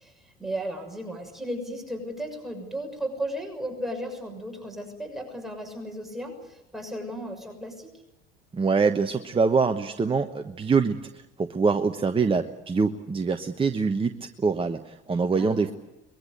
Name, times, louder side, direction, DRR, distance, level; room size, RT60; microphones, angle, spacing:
voice 1, 0.0-7.9 15.3-15.7, equal, ahead, 1 dB, 6.5 m, -35 dB
voice 2, 8.5-15.7, right 4 dB, 20° right, 7 dB, 1.2 m, -24 dB
23.0 x 21.5 x 8.1 m, 0.93 s
figure-of-eight pair, 70°, 30 cm